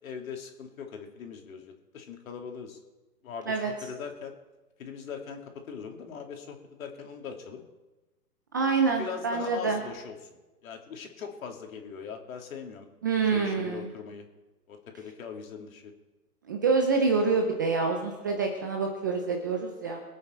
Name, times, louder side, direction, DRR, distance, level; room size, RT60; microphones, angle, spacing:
voice 1, 0.0-2.8 3.2-4.3 4.8-7.6 9.0-10.2 10.6-12.9 13.3-14.2 14.7-15.9, left 6 dB, 55° left, 3 dB, 3.0 m, -40 dB
voice 2, 8.5-9.8 13.0-13.9 16.5-20.0, right 4 dB, 15° right, 3 dB, 0.4 m, -26 dB
23.0 x 8.7 x 4.6 m, 1.1 s
hypercardioid pair, 140°, 48 cm